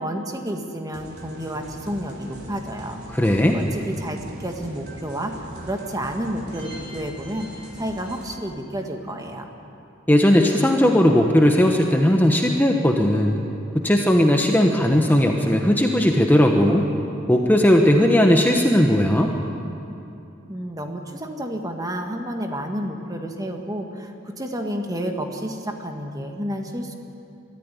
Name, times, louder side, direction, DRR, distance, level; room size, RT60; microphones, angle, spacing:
voice 1, 0.0-3.0 3.3-5.3 5.6-7.5 7.8-9.5 20.5-26.9, equal, 20° right, 3 dB, 1.7 m, -30 dB
sound 1, 0.9-8.3, equal, 55° right, 3.6 m, -41 dB
voice 2, 3.1-3.6 10.1-13.4 13.7-16.9 17.3-19.3, equal, 10° left, 2 dB, 1.1 m, -17 dB
23.0 x 14.5 x 9.9 m, 2.7 s
head